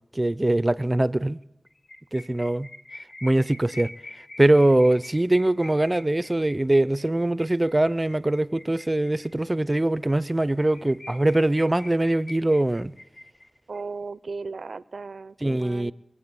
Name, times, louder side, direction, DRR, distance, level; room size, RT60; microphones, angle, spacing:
voice 1, 0.1-1.4 2.1-2.7 3.2-3.9 4.4-12.9 15.4-15.9, right 1 dB, 30° right, 0.5 m, -22 dB
sound 1, 1.7-9.6 10.0-10.1 10.4-10.5 10.7-13.8, left 2 dB, 80° left, 1.2 m, -45 dB
voice 2, 13.7-15.9, right 4 dB, 80° right, 0.5 m, -36 dB
22.0 x 8.6 x 6.9 m
cardioid pair, 40°, 0 cm